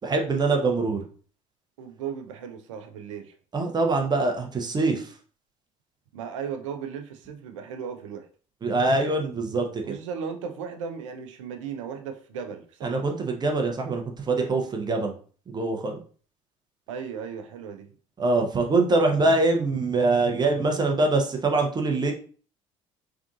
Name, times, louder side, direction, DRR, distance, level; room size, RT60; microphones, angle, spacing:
voice 1, 0.0-1.0 3.5-5.1 8.6-9.9 12.8-15.1 15.5-16.0 18.2-22.1, right 3 dB, 25° right, 3 dB, 0.8 m, -24 dB
voice 2, 1.8-3.4 6.1-8.3 9.9-13.1 16.9-17.9, right 7 dB, 65° right, 6 dB, 0.6 m, -36 dB
3.6 x 3.6 x 2.5 m, 0.41 s
figure-of-eight pair, 55°, 17 cm